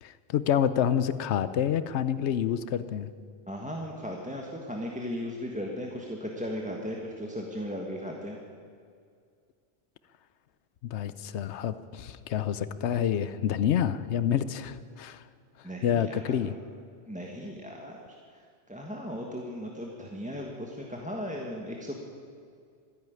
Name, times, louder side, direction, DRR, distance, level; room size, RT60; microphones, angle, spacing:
voice 1, 0.0-3.1 10.8-15.2 15.8-16.6, left 9 dB, 85° left, 14 dB, 0.9 m, -28 dB
voice 2, 3.5-8.4 15.6-16.5 17.1-18.0 18.3-18.4 18.7-22.0, equal, 5° right, -1 dB, 1.3 m, -36 dB
14.0 x 10.5 x 9.3 m, 2.2 s
omnidirectional pair, 1.1 m